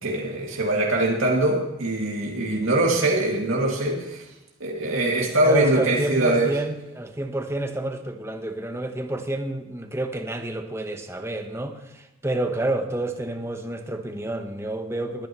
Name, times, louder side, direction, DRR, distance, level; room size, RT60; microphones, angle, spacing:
voice 1, 0.0-4.2 4.6-6.5, right 1 dB, 80° right, -2 dB, 2.3 m, -22 dB
voice 2, 5.4-15.3, right 1 dB, 15° right, 6 dB, 1.0 m, -29 dB
21.0 x 10.0 x 3.1 m, 0.99 s
head